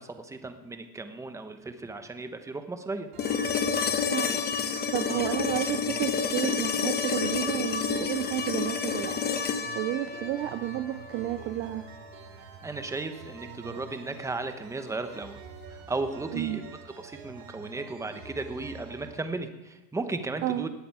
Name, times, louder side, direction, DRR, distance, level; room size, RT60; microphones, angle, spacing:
voice 1, 0.0-3.1 5.1-5.3 12.6-15.4 15.7-16.6 17.0-20.7, right 3 dB, 5° right, 8 dB, 0.9 m, -35 dB
sound 1, 3.1-19.1, right 5 dB, 55° right, 3.3 m, -47 dB
sound 2, 3.2-11.2 13.4-13.5, left 6 dB, 20° left, 1.0 m, -29 dB
voice 2, 4.0-9.2 9.7-11.9 16.3-16.6 20.4-20.7, right 13 dB, 25° right, 10 dB, 0.3 m, -31 dB
18.0 x 8.6 x 4.8 m, 1.1 s
supercardioid pair, 140°, 43 cm